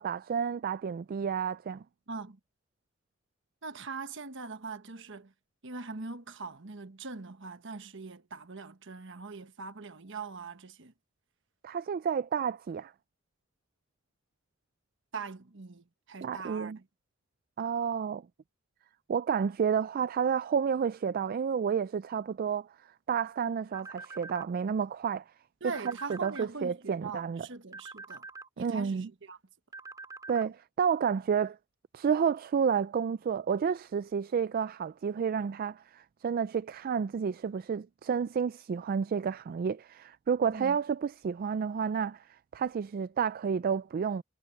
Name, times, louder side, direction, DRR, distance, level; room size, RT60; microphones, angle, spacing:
voice 1, 0.0-1.8 11.6-12.9 16.2-16.8 17.6-18.2 19.1-22.7 23.1-25.2 25.8-27.5 28.6-29.1 30.3-31.6 31.9-44.2, right 6 dB, 45° right, 0.3 m, -30 dB
voice 2, 2.1-2.4 3.6-5.3 5.6-10.9 15.1-16.8 25.6-28.3 28.6-29.4 40.5-40.8, right 4 dB, 65° right, 1.3 m, -42 dB
sound 1, 23.7-24.5 25.7-26.5 27.7-28.5 29.7-30.5, right 3 dB, 15° right, 3.5 m, -45 dB
head